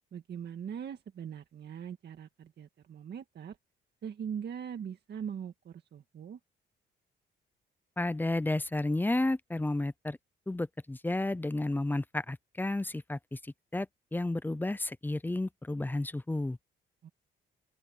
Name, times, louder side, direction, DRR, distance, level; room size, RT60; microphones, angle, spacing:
voice 1, 0.1-3.6 4.0-6.4 17.0-17.1, right 8 dB, 55° right, 1.9 m, -41 dB
voice 2, 8.0-10.2 10.5-13.4 13.7-16.6, left 2 dB, 10° left, 0.6 m, -32 dB
open air
cardioid pair, 90°, 20 cm